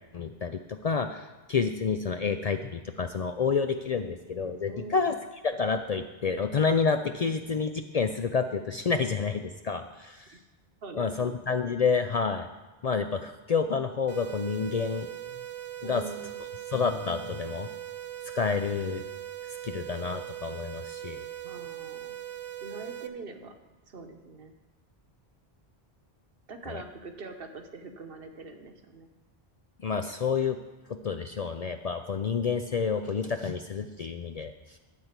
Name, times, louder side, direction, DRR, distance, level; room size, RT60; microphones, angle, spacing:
voice 1, 0.1-5.1 5.4-10.4 11.0-12.5 12.8-15.1 15.8-16.0 16.7-17.7 18.3-19.0 19.6-21.2 26.7-26.8 29.8-30.6 30.9-34.5, left 5 dB, 50° left, 7 dB, 0.5 m, -29 dB
voice 2, 4.7-5.1 10.3-10.4 10.8-11.3 15.8-16.4 21.4-22.2 22.6-23.5 23.9-24.5 26.5-29.1, right 3 dB, 65° right, 6 dB, 1.1 m, -43 dB
sound 1, 14.1-23.1, right 12 dB, 45° right, 0.4 m, -40 dB
12.0 x 4.5 x 8.1 m, 1.2 s
omnidirectional pair, 1.0 m